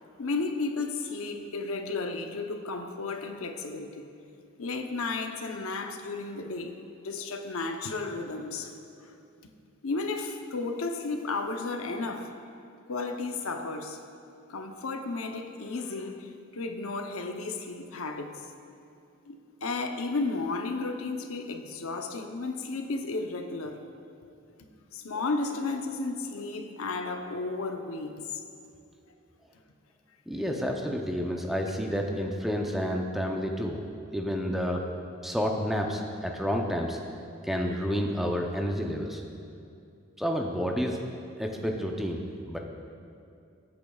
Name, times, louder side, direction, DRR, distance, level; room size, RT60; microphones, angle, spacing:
voice 1, 0.2-4.1 4.6-6.7 7.0-9.1 9.8-12.3 12.9-14.0 14.5-18.5 19.3-23.8 24.6-28.4, left 3 dB, 80° left, 5 dB, 0.7 m, -33 dB
voice 2, 30.3-33.8 34.1-34.8 35.2-37.0 37.4-39.2 40.2-41.0 41.4-42.6, equal, ahead, 1 dB, 0.6 m, -30 dB
20.0 x 8.6 x 2.3 m, 2.5 s
head